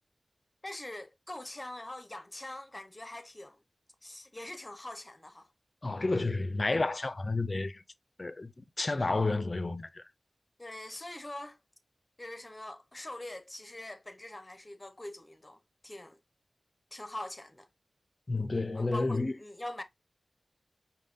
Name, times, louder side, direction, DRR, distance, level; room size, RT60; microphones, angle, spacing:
voice 1, 0.6-3.6 4.0-5.5 10.6-11.6 12.2-16.2 16.9-17.7 18.7-19.8, left 1 dB, 25° left, 0.8 m, -43 dB
voice 2, 5.8-7.8 8.2-10.0 18.3-19.3, left 3 dB, 45° left, 0.5 m, -31 dB
5.3 x 2.2 x 3.6 m
cardioid pair, 45°, 0 cm